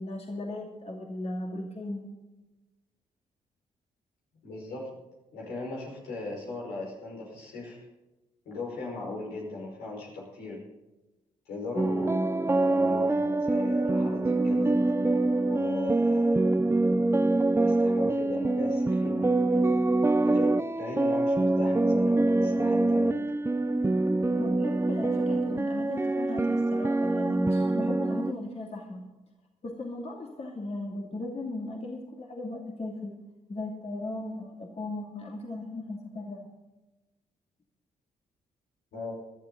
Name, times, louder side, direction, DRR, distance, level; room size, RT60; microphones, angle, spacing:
voice 1, 0.0-2.1 24.4-29.1 29.6-33.1 33.5-36.5, left 2 dB, 40° left, 0 dB, 2.7 m, -36 dB
voice 2, 4.4-4.9 5.3-7.9 8.5-10.6 11.5-14.8 15.5-16.5 17.6-19.6 20.2-23.2 25.3-25.9 38.9-39.2, left 2 dB, 80° left, -3 dB, 5.3 m, -38 dB
sound 1, 11.8-28.3, right 2 dB, 15° right, 0.6 m, -25 dB
19.5 x 12.0 x 4.0 m, 1.1 s
supercardioid pair, 50°, 16 cm